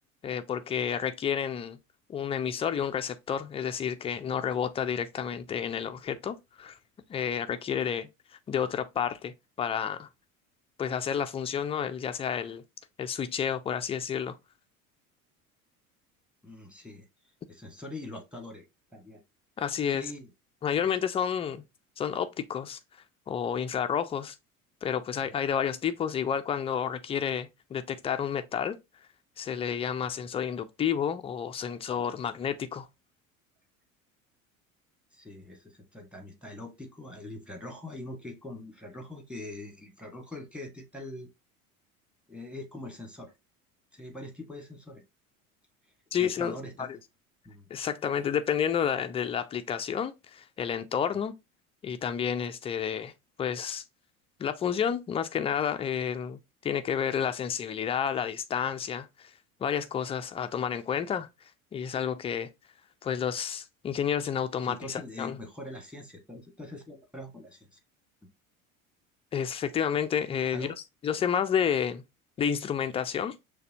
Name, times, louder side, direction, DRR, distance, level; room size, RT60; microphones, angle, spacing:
voice 1, 0.2-1.8 2.1-6.8 7.1-8.1 8.5-10.1 10.8-12.6 13.0-14.4 19.6-20.1 20.6-21.6 22.0-22.8 23.3-24.3 24.8-28.8 29.4-32.9 46.1-46.9 47.7-51.3 51.8-53.1 53.4-53.8 54.4-59.3 59.6-61.3 61.7-62.5 63.0-65.4 69.3-70.7 71.0-72.0 72.4-73.4, left 8 dB, 15° left, 0.3 m, -30 dB
voice 2, 16.4-17.1 17.5-18.6 18.9-19.2 19.9-20.3 20.8-20.9 35.1-41.3 42.3-43.3 43.9-45.0 46.2-47.0 47.4-47.7 64.6-67.8 70.5-70.7, left 1 dB, 5° right, 1.6 m, -43 dB
6.4 x 2.3 x 2.7 m
figure-of-eight pair, 70°, 42 cm